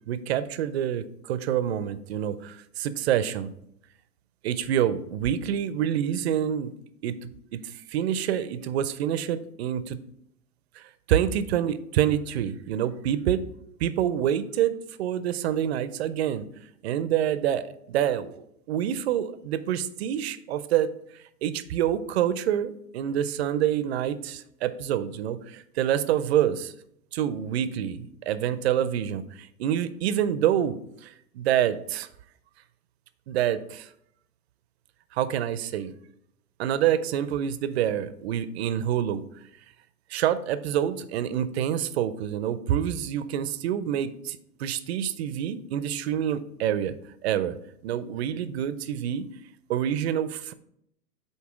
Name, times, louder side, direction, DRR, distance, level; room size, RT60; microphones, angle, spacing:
voice 1, 0.1-3.5 4.4-6.7 7.0-7.2 7.5-7.6 7.9-10.0 10.8-10.9 11.1-13.4 13.8-14.7 15.0-16.4 16.8-20.9 21.4-26.7 27.1-28.0 28.3-30.8 31.0-32.1 33.3-33.9 35.1-35.9 36.6-39.2 40.1-46.9 47.2-47.6 47.8-49.3 49.7-50.5, right 10 dB, 45° right, 13 dB, 0.4 m, -27 dB
8.2 x 2.8 x 4.7 m, 0.74 s
hypercardioid pair, 110°, 48 cm